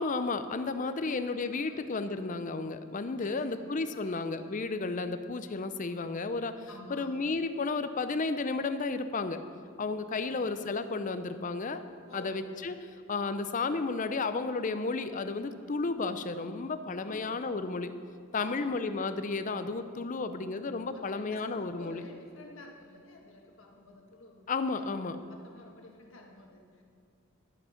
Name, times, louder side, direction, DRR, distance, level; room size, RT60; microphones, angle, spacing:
voice 1, 0.0-9.4 9.8-11.8 12.1-12.8 13.1-17.9 18.3-22.0 24.5-25.2, left 3 dB, 35° left, 10 dB, 0.5 m, -33 dB
voice 2, 0.9-1.9 3.2-3.8 4.1-4.2 6.7-7.2 10.2-10.4 12.1-12.4 17.0-17.6 18.3-18.8 20.0-20.1 20.7-24.5 24.8-24.9 25.3-26.8, left 1 dB, 60° left, 0 dB, 1.7 m, -51 dB
11.5 x 8.1 x 5.8 m, 2.4 s
head